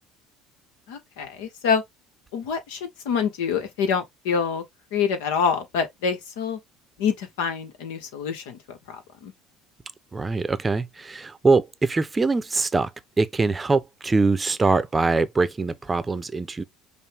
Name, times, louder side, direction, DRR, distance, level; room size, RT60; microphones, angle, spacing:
voice 1, 0.9-1.8 2.3-4.6 4.9-6.6 7.0-9.3, left 6 dB, 80° left, 1.1 m, -26 dB
voice 2, 10.1-12.9 13.2-16.6, right 3 dB, 20° right, 0.6 m, -23 dB
5.4 x 2.2 x 3.4 m
hypercardioid pair, 75°, 0 cm